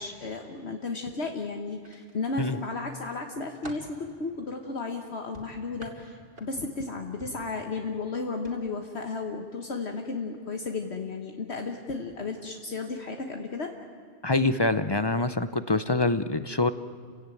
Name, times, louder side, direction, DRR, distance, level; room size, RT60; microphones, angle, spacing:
voice 1, 0.0-13.7, left 3 dB, 60° left, 3 dB, 1.5 m, -34 dB
sound 1, 1.8-2.6 3.1-4.0 5.3-6.8 7.2-7.5 8.3-8.5 8.9-9.1, equal, 45° right, 2.7 m, -47 dB
voice 2, 14.2-16.7, left 2 dB, 30° left, 12 dB, 0.5 m, -25 dB
30.0 x 16.5 x 9.2 m, 2.2 s
omnidirectional pair, 1.3 m